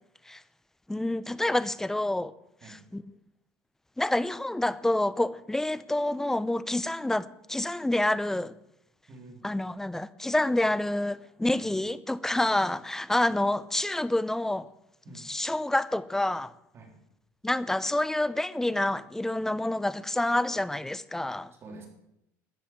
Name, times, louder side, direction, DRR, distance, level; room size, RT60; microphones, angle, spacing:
voice 1, 0.9-2.3 2.6-3.0 4.0-8.5 9.4-14.7 15.1-16.5 17.4-21.5, left 1 dB, 5° left, 0.6 m, -28 dB
voice 2, 9.1-9.4 11.6-11.7 13.2-13.3 15.0-15.3 16.7-16.9 21.6-21.9, right 2 dB, 35° right, 3.7 m, -47 dB
13.5 x 7.8 x 8.9 m
supercardioid pair, 115°, 7 cm